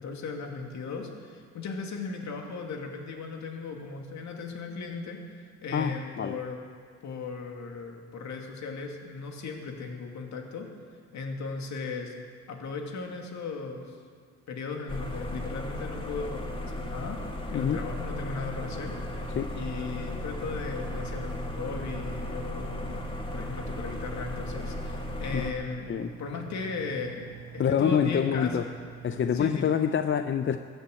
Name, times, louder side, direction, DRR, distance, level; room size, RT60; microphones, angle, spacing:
voice 1, 0.0-6.6 7.0-10.7 11.1-12.2 12.5-14.0 14.5-25.9 26.2-27.3 27.5-28.5 29.3-29.7, left 4 dB, 65° left, 2 dB, 2.4 m, -37 dB
voice 2, 5.7-6.4 17.5-17.8 19.4-19.5 25.3-25.5 25.9-26.1 27.6-28.7 29.0-30.6, left 8 dB, 40° left, 9 dB, 0.6 m, -26 dB
sound 1, 14.9-25.5, left 1 dB, 15° left, 2.0 m, -36 dB
sound 2, 18.2-29.6, right 9 dB, 70° right, 1.2 m, -45 dB
14.0 x 10.0 x 8.3 m, 2.1 s
cardioid pair, 90°, 30 cm